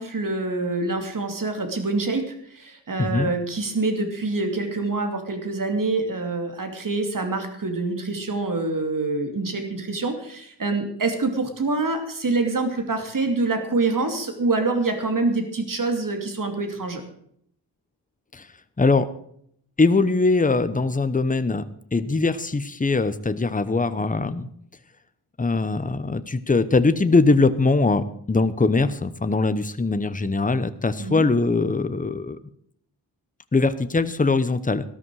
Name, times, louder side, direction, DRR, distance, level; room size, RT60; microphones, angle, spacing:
voice 1, 0.0-17.0 31.0-31.2, right 3 dB, 45° right, 5 dB, 2.7 m, -26 dB
voice 2, 3.0-3.3 18.3-18.5 18.8-19.1 19.8-21.7 21.9-24.5 25.4-32.4 33.5-34.8, left 3 dB, 20° left, 12 dB, 0.8 m, -21 dB
14.0 x 13.0 x 4.8 m, 0.68 s
wide cardioid pair, 125°, 43 cm